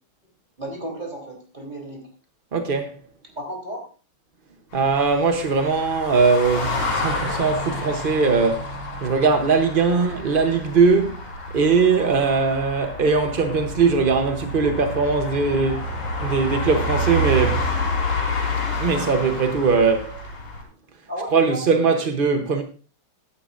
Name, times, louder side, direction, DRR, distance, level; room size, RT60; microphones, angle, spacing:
voice 1, 0.6-2.0 3.4-3.8 9.9-10.1 21.1-22.0, right 1 dB, 20° right, 3.6 m, -34 dB
voice 2, 2.5-3.0 4.7-11.2 11.5-15.9 16.2-17.8 18.8-20.2 21.3-22.6, right 4 dB, 50° right, 0.6 m, -20 dB
sound 1, 4.7-20.6, left 1 dB, 80° left, 4.7 m, -29 dB
14.5 x 11.5 x 2.6 m
omnidirectional pair, 2.4 m